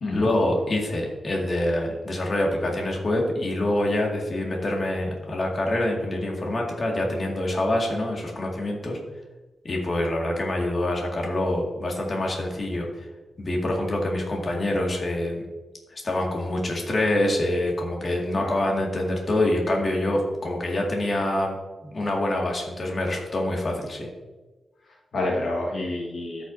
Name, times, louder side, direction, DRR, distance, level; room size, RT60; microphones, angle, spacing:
voice 1, 0.1-9.0 9.6-12.9 13.4-15.4 15.9-21.6 21.8-24.1, left 1 dB, 40° left, -1 dB, 2.0 m, -26 dB
voice 2, 24.8-26.4, left 2 dB, 60° left, -3 dB, 1.6 m, -29 dB
14.0 x 6.1 x 2.7 m, 1.2 s
wide cardioid pair, 130°, 0 cm